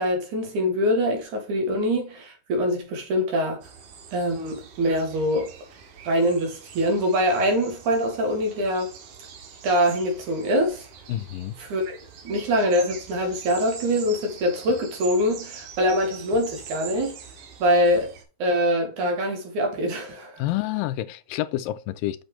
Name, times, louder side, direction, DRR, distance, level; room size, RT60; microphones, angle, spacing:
voice 1, 0.0-3.6 4.1-5.5 6.0-8.9 9.6-10.9 11.6-12.0 12.2-17.2 17.6-18.1 18.4-20.4, equal, 65° right, 3.4 m, -24 dB
sound 1, 3.6-18.2, right 6 dB, 80° right, 3.2 m, -44 dB
voice 2, 11.1-11.6 20.4-22.2, left 14 dB, 85° left, 2.3 m, -28 dB
7.5 x 6.2 x 3.1 m
omnidirectional pair, 3.9 m